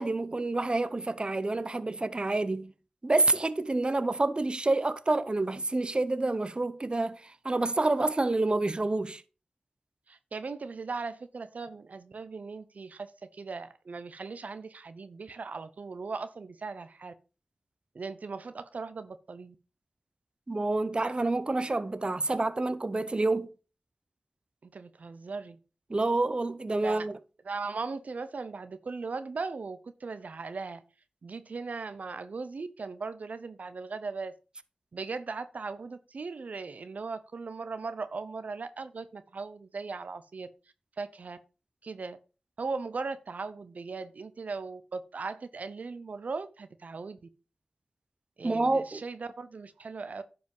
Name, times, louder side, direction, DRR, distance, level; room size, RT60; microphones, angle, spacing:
voice 1, 0.0-2.7 3.0-9.2 20.5-23.5 25.9-27.2 48.4-49.0, right 2 dB, 40° right, 0.8 m, -28 dB
voice 2, 10.1-17.1 17.9-19.5 24.6-25.6 26.8-27.1 27.4-30.8 31.2-34.3 34.9-40.5 41.0-41.4 41.8-42.2 42.6-47.3 48.4-50.2, right 4 dB, 75° right, 0.7 m, -38 dB
10.5 x 5.0 x 5.4 m
cardioid pair, 45°, 3 cm